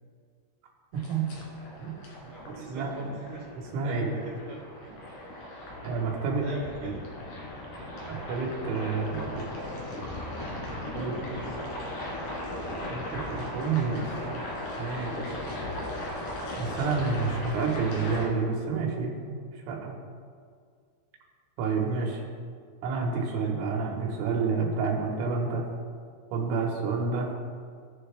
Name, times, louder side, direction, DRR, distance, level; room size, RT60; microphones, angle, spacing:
sound 1, 0.9-18.3, left 1 dB, 55° left, 2.7 m, -37 dB
voice 1, 0.9-1.3 1.8-1.9 2.7-2.9 3.7-4.1 5.8-6.4 6.8-6.9 8.0-9.5 10.9-11.1 12.9-14.1 14.8-15.2 16.6-19.4 19.7-20.0 21.6-22.1 22.8-25.7 26.3-27.3, right 4 dB, 90° right, 0 dB, 3.6 m, -29 dB
voice 2, 2.2-3.4 3.8-5.0 6.3-7.0 10.9-11.6 21.9-22.3 23.1-23.5 23.8-23.9, right 3 dB, 65° right, -4 dB, 2.1 m, -42 dB
17.5 x 6.7 x 2.3 m, 2.1 s
omnidirectional pair, 5.5 m